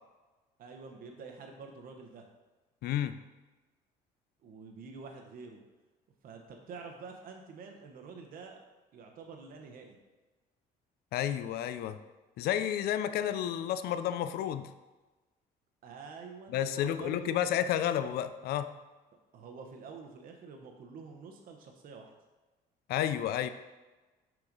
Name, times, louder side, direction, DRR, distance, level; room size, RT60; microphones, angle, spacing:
voice 1, 0.6-2.2 4.4-5.6 6.2-8.6 8.9-10.0 15.8-17.5 19.3-22.1, right 4 dB, 60° right, 3 dB, 0.8 m, -47 dB
voice 2, 2.8-3.1 11.1-12.0 12.4-14.7 16.5-18.7 22.9-23.5, left 10 dB, 70° left, 11 dB, 0.4 m, -31 dB
6.0 x 4.9 x 3.8 m, 1.2 s
cardioid pair, 110°, 17 cm